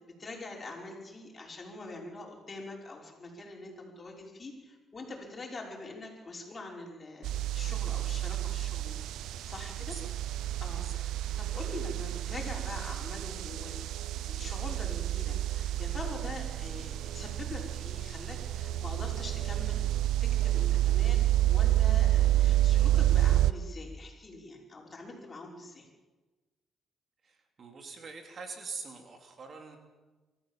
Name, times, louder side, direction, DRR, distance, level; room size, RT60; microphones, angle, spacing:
voice 1, 0.2-9.0 9.5-10.0 10.6-13.8 14.2-19.9 20.2-25.9, left 2 dB, 35° left, 0 dB, 5.7 m, -44 dB
sound 1, 7.2-23.5, right 14 dB, 85° right, 0.6 m, -29 dB
voice 2, 9.8-10.1 10.7-11.0 27.2-29.8, right 4 dB, 50° right, 4 dB, 3.3 m, -44 dB
24.5 x 14.0 x 7.5 m, 1.2 s
cardioid pair, 90°, 0 cm